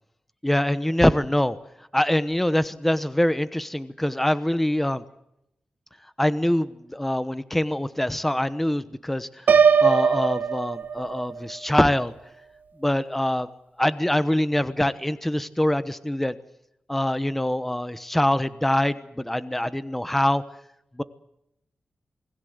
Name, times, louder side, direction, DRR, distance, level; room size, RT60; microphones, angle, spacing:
voice 1, 0.4-1.6 1.9-5.0 6.2-9.3 9.8-12.1 12.8-13.5 13.8-16.4 16.9-20.4 21.0-21.1, left 1 dB, 5° left, 13 dB, 1.0 m, -24 dB
Piano, 9.5-11.4, right 6 dB, 80° right, 1.2 m, -20 dB
28.0 x 20.5 x 8.0 m, 0.81 s
wide cardioid pair, 170°, 3 cm